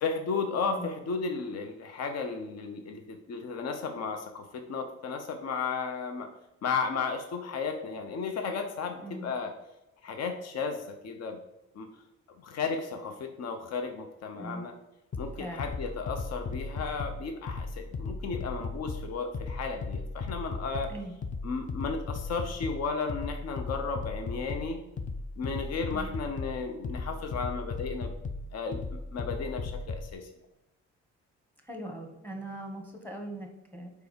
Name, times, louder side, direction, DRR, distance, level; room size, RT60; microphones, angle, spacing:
voice 1, 0.0-6.3 6.6-9.5 10.0-11.4 11.7-11.9 12.4-14.7 15.2-20.9 21.4-24.8 25.4-28.1 28.5-30.3, left 5 dB, 55° left, 5 dB, 0.7 m, -34 dB
voice 2, 9.0-9.3 14.3-14.7 15.4-15.7 20.9-21.1 25.9-26.1 31.6-33.9, right 1 dB, 5° left, 3 dB, 1.4 m, -40 dB
sound 1, 15.1-30.1, left 3 dB, 25° left, 0.4 m, -37 dB
4.7 x 4.0 x 5.0 m, 0.94 s
cardioid pair, 90°, 30 cm